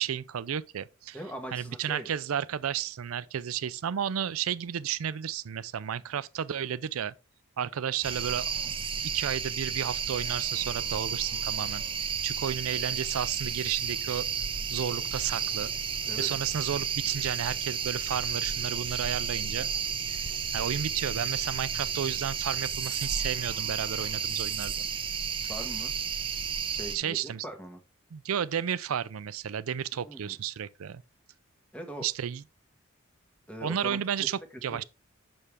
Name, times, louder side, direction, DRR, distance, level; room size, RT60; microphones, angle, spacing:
voice 1, 0.0-1.2 1.5-7.1 7.6-8.8 9.1-14.3 14.7-15.7 16.2-19.7 20.0-20.2 20.5-24.9 26.9-27.4 28.1-31.0 32.0-32.4 33.6-34.8, right 8 dB, 90° right, 0.4 m, -32 dB
voice 2, 1.1-2.1 16.1-16.3 25.5-25.9 26.7-27.8 30.0-30.3 31.7-32.0 33.5-34.3 34.7-34.8, right 1 dB, 5° left, 1.3 m, -41 dB
sound 1, 8.0-27.0, right 7 dB, 25° right, 0.6 m, -32 dB
sound 2, 14.2-22.2, equal, 50° left, 2.0 m, -52 dB
6.7 x 6.2 x 3.4 m
head